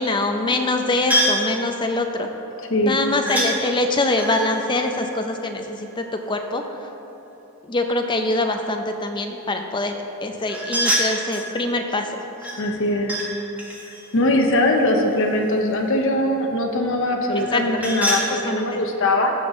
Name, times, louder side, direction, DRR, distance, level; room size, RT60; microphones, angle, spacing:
voice 1, 0.0-2.3 2.8-6.6 7.6-12.2 17.5-17.8 18.3-18.8, left 2 dB, 20° left, 5 dB, 0.5 m, -24 dB
sound 1, 1.1-1.5 3.3-3.5 4.1-5.9 10.5-11.5 12.4-13.3 13.6-15.5 17.3-18.3, equal, 5° right, 1.2 m, -26 dB
voice 2, 12.6-13.1 13.9-19.3, left 1 dB, 60° left, 3 dB, 0.9 m, -21 dB
15.0 x 5.6 x 3.1 m, 2.9 s
head